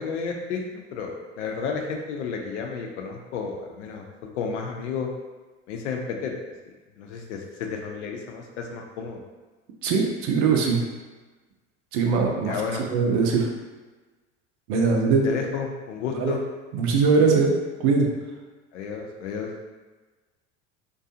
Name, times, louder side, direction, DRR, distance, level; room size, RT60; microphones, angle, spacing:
voice 1, 0.0-4.0 4.3-5.1 5.7-6.3 7.0-9.2 12.4-12.8 14.8-14.9 15.2-16.4 18.7-19.5, left 5 dB, 80° left, 2 dB, 0.6 m, -32 dB
voice 2, 9.8-10.8 11.9-12.5 12.9-13.5 14.7-15.2 16.2-16.3 16.7-17.5 17.8-18.1, right 4 dB, 60° right, 1 dB, 0.6 m, -21 dB
2.5 x 2.3 x 2.6 m, 1.3 s
hypercardioid pair, 85°, 35 cm